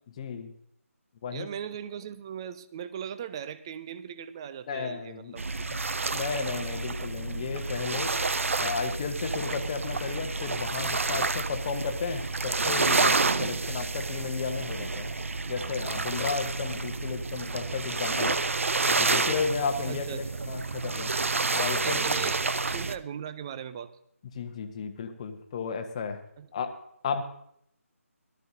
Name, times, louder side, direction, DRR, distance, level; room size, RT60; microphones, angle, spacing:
voice 1, 0.2-0.5 1.2-1.5 4.7-5.4 6.1-8.1 8.6-15.1 15.5-18.4 18.8-21.1 21.5-22.2 24.4-26.2 26.5-26.7 27.0-27.2, left 5 dB, 25° left, 8 dB, 1.0 m, -33 dB
voice 2, 1.3-5.7 19.9-20.2 21.8-23.9 26.4-26.5, right 9 dB, 20° right, 12 dB, 0.4 m, -39 dB
sound 1, 5.4-22.9, right 3 dB, 60° right, 0.6 m, -29 dB
18.0 x 13.0 x 2.7 m, 0.70 s
figure-of-eight pair, 155°, 8 cm